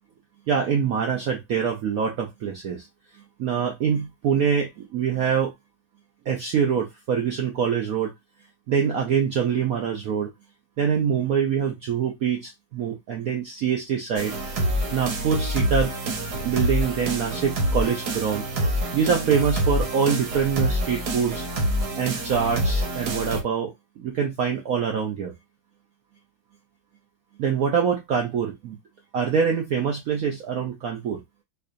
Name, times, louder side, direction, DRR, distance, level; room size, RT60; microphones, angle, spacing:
voice 1, 0.5-2.9 3.4-5.5 6.3-8.1 8.7-10.3 10.8-14.3 14.9-15.9 16.4-18.4 18.9-21.4 22.0-25.3 27.4-28.8 29.1-31.2, right 7 dB, 85° right, 0.7 m, -24 dB
sound 1, 14.2-23.4, right 1 dB, 55° right, 1.3 m, -26 dB
4.6 x 2.6 x 2.5 m
omnidirectional pair, 2.4 m